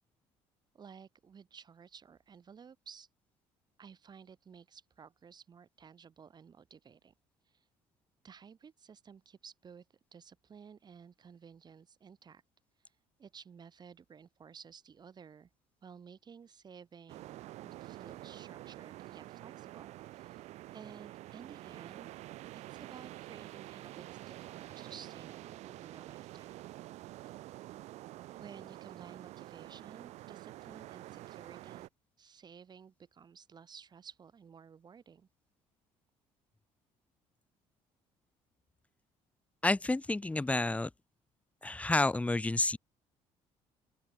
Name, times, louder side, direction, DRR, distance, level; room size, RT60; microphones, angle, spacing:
voice 1, 0.7-3.1 3.8-7.1 7.5-7.6 8.2-9.9 10.1-12.4 13.2-15.5 15.8-20.4 20.7-22.1 22.5-26.6 28.4-31.9 32.2-35.3, right 6 dB, 35° right, 7.8 m, -54 dB
sound 1, 17.1-31.9, right 16 dB, 75° right, 1.7 m, -48 dB
voice 2, 39.6-40.9 41.6-42.8, left 2 dB, 10° left, 1.7 m, -30 dB
open air
cardioid pair, 105°, 12 cm